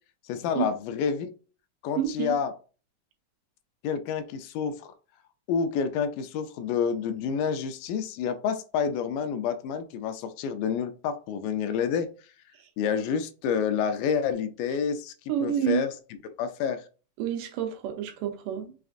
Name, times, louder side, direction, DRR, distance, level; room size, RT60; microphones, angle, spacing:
voice 1, 0.3-1.3 1.8-2.5 3.8-4.9 5.5-12.1 12.8-15.1 15.4-15.9 16.2-16.9, left 7 dB, 85° left, 2.2 m, -28 dB
voice 2, 2.0-2.4 12.6-12.7 15.3-15.8 17.2-18.8, right 9 dB, 85° right, 2.3 m, -29 dB
5.9 x 2.4 x 2.5 m
omnidirectional pair, 3.8 m